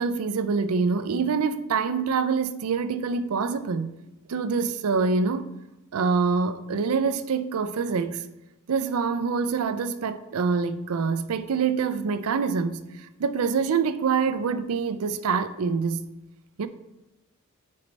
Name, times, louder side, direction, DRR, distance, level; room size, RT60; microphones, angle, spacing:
voice 1, 0.0-3.9 4.3-5.5 5.9-8.2 8.7-12.8 13.2-16.0 16.6-16.7, right 5 dB, 70° right, 0.4 m, -25 dB
9.4 x 4.1 x 3.3 m
head